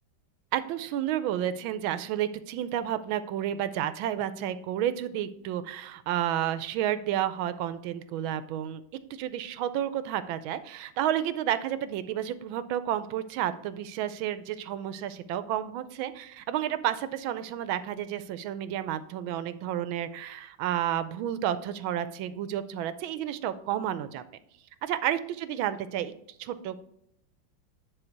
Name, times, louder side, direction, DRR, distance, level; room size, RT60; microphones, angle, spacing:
voice 1, 0.5-8.8 9.1-24.2 24.8-26.1 26.4-26.8, right 11 dB, 80° right, 13 dB, 1.4 m, -31 dB
9.9 x 4.1 x 4.5 m, 0.75 s
omnidirectional pair, 2.2 m